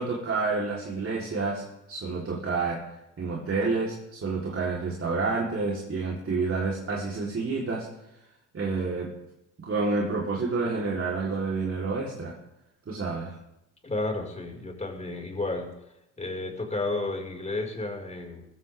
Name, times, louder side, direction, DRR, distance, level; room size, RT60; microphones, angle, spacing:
voice 1, 0.0-2.8 3.2-7.9 8.5-9.1 9.6-12.4 12.9-13.3, right 3 dB, 35° right, -3 dB, 4.1 m, -29 dB
voice 2, 13.8-15.7 16.2-18.5, left 2 dB, 20° left, 1 dB, 5.7 m, -32 dB
22.5 x 15.0 x 3.7 m, 0.89 s
hypercardioid pair, 65°, 38 cm